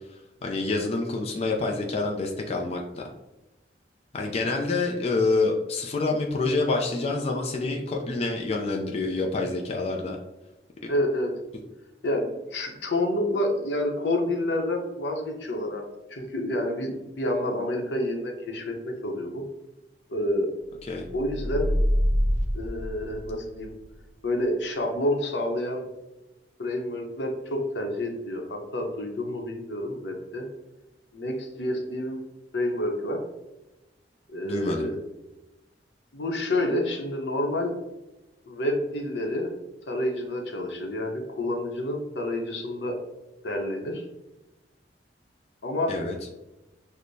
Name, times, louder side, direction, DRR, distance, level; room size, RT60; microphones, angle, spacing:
voice 1, 0.4-3.0 4.1-10.2 20.9-21.0 34.4-34.9 45.9-46.2, left 3 dB, 35° left, 0 dB, 0.4 m, -27 dB
voice 2, 10.9-11.4 12.0-15.8 16.1-19.4 20.1-20.5 21.1-21.8 22.5-23.7 24.2-25.8 26.6-30.4 31.1-32.2 32.5-33.2 34.3-35.0 36.1-37.7 38.5-39.5 39.9-43.0 43.4-44.0 45.6-46.0, left 1 dB, 80° left, 2 dB, 0.7 m, -28 dB
sound 1, 21.0-23.7, equal, 40° right, 0.5 m, -25 dB
6.2 x 2.1 x 2.6 m, 1.0 s
head